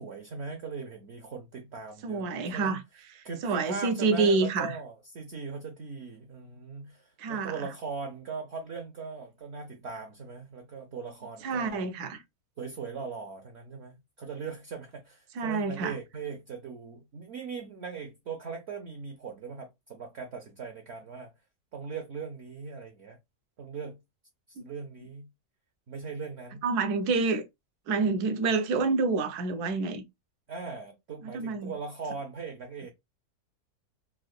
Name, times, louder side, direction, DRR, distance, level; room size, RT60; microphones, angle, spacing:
voice 1, 0.0-2.7 3.2-11.9 12.6-21.3 21.7-23.2 23.6-24.0 24.5-25.3 25.9-26.6 30.5-32.9, right 5 dB, 60° right, 0.7 m, -39 dB
voice 2, 2.0-2.8 3.4-4.8 7.2-7.7 11.4-12.2 15.4-15.9 24.6-24.7 26.6-27.5 27.9-30.0 31.2-31.7, right 4 dB, 90° right, 1.2 m, -28 dB
3.7 x 2.5 x 2.2 m
omnidirectional pair, 1.6 m